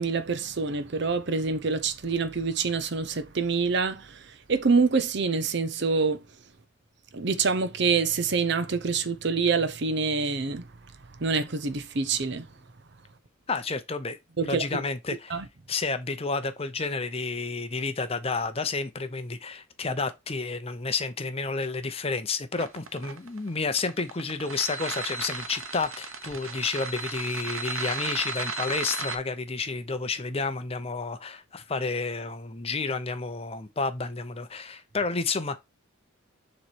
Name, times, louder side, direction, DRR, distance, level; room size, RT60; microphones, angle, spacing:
voice 1, 0.0-4.2 4.5-6.2 7.1-10.6 11.2-12.4 14.4-14.6 15.3-15.4, right 4 dB, 55° right, 0.7 m, -26 dB
voice 2, 13.5-14.2 14.4-15.4 15.7-35.6, left 4 dB, 25° left, 0.6 m, -30 dB
sound 1, 22.6-29.2, right 3 dB, 75° right, 1.0 m, -34 dB
7.0 x 3.1 x 4.5 m
head